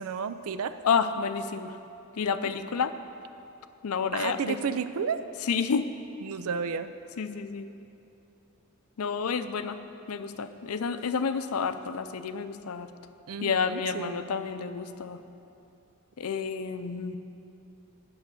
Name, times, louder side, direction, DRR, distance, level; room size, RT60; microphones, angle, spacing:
voice 1, 0.0-0.7 4.1-5.2 6.2-6.9 13.3-14.3, right 6 dB, 85° right, 11 dB, 0.5 m, -32 dB
voice 2, 0.8-1.8 2.2-2.9 3.8-4.6 5.4-5.9 7.2-7.7 9.0-9.8 10.1-12.9 13.4-15.2 16.2-17.2, left 6 dB, 90° left, 10 dB, 0.5 m, -30 dB
9.0 x 6.4 x 8.2 m, 2.8 s
head